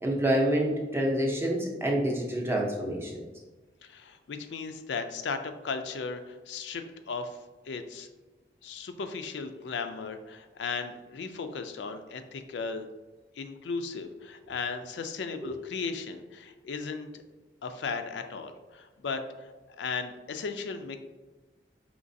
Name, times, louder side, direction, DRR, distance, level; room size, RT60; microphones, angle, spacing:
voice 1, 0.0-3.2 15.4-15.5, right 1 dB, 15° right, -1 dB, 0.6 m, -27 dB
voice 2, 3.8-7.4 7.7-8.1 8.6-12.8 13.4-17.1 17.6-19.5 19.8-21.0, left 4 dB, 80° left, 7 dB, 0.4 m, -36 dB
5.1 x 3.1 x 2.6 m, 1.2 s
head